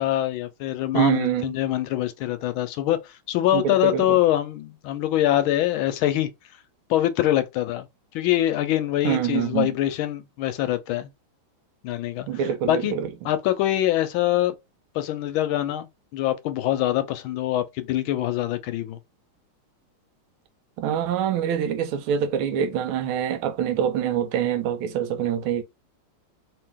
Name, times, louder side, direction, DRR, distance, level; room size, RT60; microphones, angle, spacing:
voice 1, 0.0-6.3 6.9-7.9 8.1-11.1 11.8-12.9 13.2-14.5 14.9-19.0, left 13 dB, 80° left, 1.3 m, -24 dB
voice 2, 0.9-1.5 3.5-4.0 9.0-9.7 12.3-13.1 20.8-25.6, right 9 dB, 80° right, 1.4 m, -25 dB
3.1 x 2.9 x 3.5 m
omnidirectional pair, 2.3 m